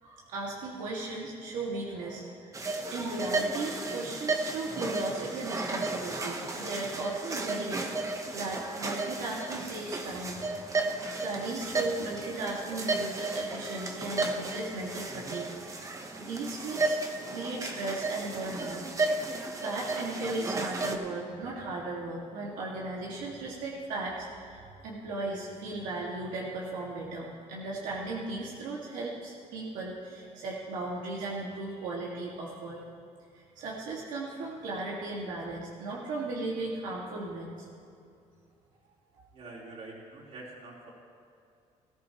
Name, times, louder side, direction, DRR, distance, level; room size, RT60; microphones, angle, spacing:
voice 1, 0.0-2.6 2.9-10.5 11.2-15.6 16.2-17.0 17.3-18.8 19.2-32.8 33.6-37.5, right 2 dB, 90° right, -4 dB, 1.9 m, -36 dB
sound 1, 2.5-21.0, right 3 dB, 25° right, 1.0 m, -34 dB
voice 2, 39.3-40.9, right 2 dB, 50° right, -5 dB, 3.7 m, -45 dB
19.0 x 14.5 x 3.0 m, 2.5 s
cardioid pair, 130°, 13 cm